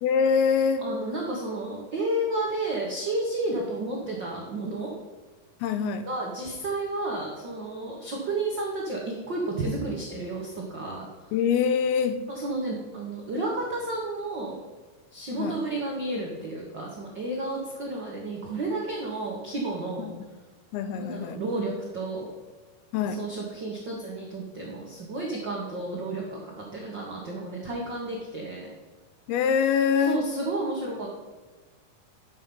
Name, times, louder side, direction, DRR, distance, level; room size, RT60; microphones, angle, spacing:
voice 1, 0.0-0.8 5.6-6.1 11.3-12.2 15.4-15.6 20.0-20.1 20.7-21.4 22.9-23.2 29.3-30.2, left 6 dB, 90° left, 10 dB, 2.6 m, -24 dB
voice 2, 0.8-4.9 6.0-11.3 12.3-14.6 15.1-20.1 20.9-22.3 23.0-28.7 30.1-31.1, right 2 dB, 70° right, -2 dB, 1.1 m, -32 dB
9.8 x 7.5 x 5.4 m, 1.3 s
omnidirectional pair, 4.5 m